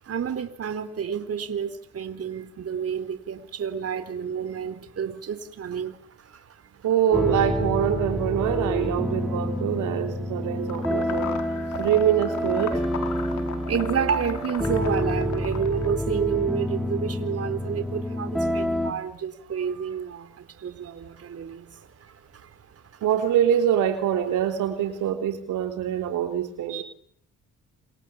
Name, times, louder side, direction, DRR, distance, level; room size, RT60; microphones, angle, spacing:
voice 1, 0.0-6.6 11.7-11.9 13.2-23.1, right 7 dB, 50° right, 9 dB, 4.0 m, -30 dB
voice 2, 6.8-11.4 11.8-12.8 23.0-26.8, right 10 dB, 85° right, 5 dB, 3.5 m, -24 dB
sound 1, 7.1-18.9, left 1 dB, ahead, 4.3 m, -28 dB
sound 2, 10.7-15.9, left 8 dB, 70° left, 5.0 m, -37 dB
28.5 x 26.5 x 7.2 m, 0.63 s
cardioid pair, 90°, 30 cm